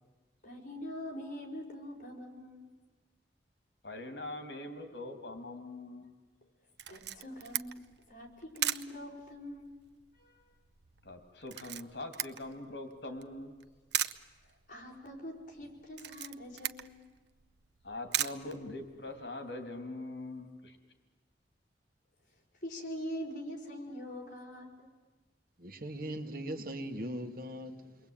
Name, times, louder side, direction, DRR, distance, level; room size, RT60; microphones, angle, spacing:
voice 1, 0.4-2.7 6.9-9.7 10.1-10.4 14.4-17.1 22.6-24.9, equal, 50° left, 4.7 m, -44 dB
voice 2, 3.8-6.1 11.0-13.6 17.8-20.8, left 2 dB, 70° left, 2.8 m, -42 dB
Camera, 6.8-19.3, right 11 dB, 75° right, 0.8 m, -40 dB
voice 3, 25.6-28.0, right 1 dB, 55° right, 1.7 m, -39 dB
29.0 x 22.0 x 8.8 m
head